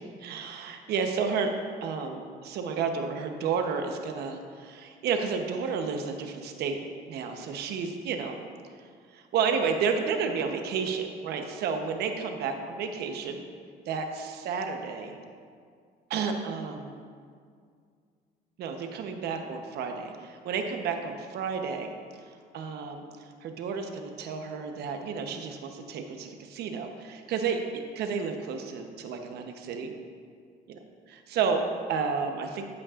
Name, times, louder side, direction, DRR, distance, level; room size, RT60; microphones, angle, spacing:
voice 1, 0.2-1.5 1.8-6.8 7.1-8.4 9.1-13.4 13.9-15.2 16.1-16.9 18.6-21.9 22.5-23.0 23.4-29.9 31.1-32.7, right 5 dB, 75° right, 5 dB, 0.9 m, -31 dB
13.5 x 8.4 x 2.5 m, 2.1 s
cardioid pair, 110°, 17 cm